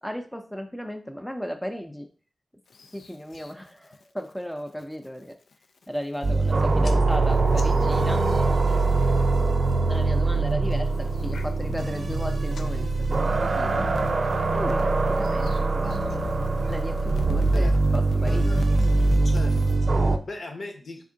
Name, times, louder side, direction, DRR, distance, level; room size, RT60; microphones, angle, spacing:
voice 1, 0.0-2.1 2.9-5.4 5.9-8.2 9.9-13.9 14.5-18.7, equal, 5° left, 4 dB, 0.5 m, -35 dB
sound 1, 2.7-3.5 3.9-4.3 4.7-5.1 5.5-5.6 5.8-6.5 6.8-9.4 9.7-10.2 10.7-19.8, left 4 dB, 80° left, 0.3 m, -40 dB
sound 2, 6.2-20.2, right 3 dB, 60° right, 0.4 m, -23 dB
voice 2, 18.2-18.6 19.2-21.0, left 2 dB, 60° left, 3 dB, 0.8 m, -39 dB
3.5 x 2.4 x 3.8 m, 0.38 s
cardioid pair, 50°, 0 cm